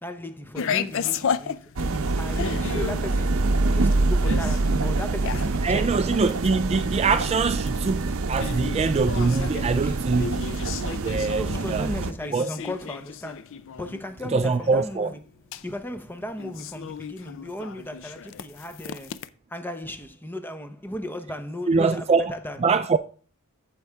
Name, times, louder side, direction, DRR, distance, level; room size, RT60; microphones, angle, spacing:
voice 1, 0.0-1.6 2.2-3.4 3.7-6.0 9.8-10.0 11.2-13.5 13.8-15.2 15.6-19.2 19.5-22.6, left 1 dB, 10° left, 0.8 m, -36 dB
sound 1, 0.6-19.3, left 7 dB, 60° left, 0.5 m, -34 dB
sound 2, 1.8-12.1, right 3 dB, 65° right, 0.7 m, -25 dB
voice 2, 5.6-10.4 10.9-11.9 12.3-12.5 14.3-15.1 21.7-22.3 22.6-23.0, right 4 dB, 30° right, 0.3 m, -23 dB
9.6 x 6.8 x 3.5 m
head